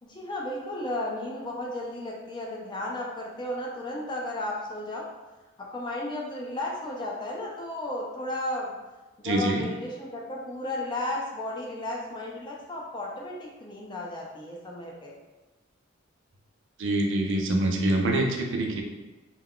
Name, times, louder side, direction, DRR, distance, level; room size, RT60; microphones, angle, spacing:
voice 1, 0.0-5.1 5.6-8.7 9.2-15.1, left 1 dB, 20° left, -2 dB, 0.4 m, -34 dB
voice 2, 9.2-9.7 16.8-18.8, right 1 dB, 60° right, 1 dB, 0.4 m, -25 dB
2.3 x 2.2 x 3.5 m, 1.1 s
head